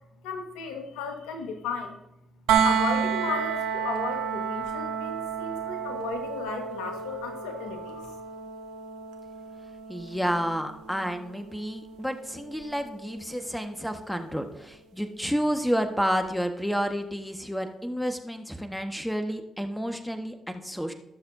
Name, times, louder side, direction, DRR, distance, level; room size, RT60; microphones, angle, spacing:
voice 1, 0.2-2.0 2.6-8.2, left 4 dB, 80° left, 4 dB, 1.6 m, -35 dB
sound 1, 2.5-14.3 16.2-16.3, right 7 dB, 80° right, 1.0 m, -31 dB
voice 2, 9.9-20.9, equal, 5° left, 6 dB, 1.5 m, -30 dB
20.5 x 6.9 x 2.8 m, 0.85 s
hypercardioid pair, 40°, 0 cm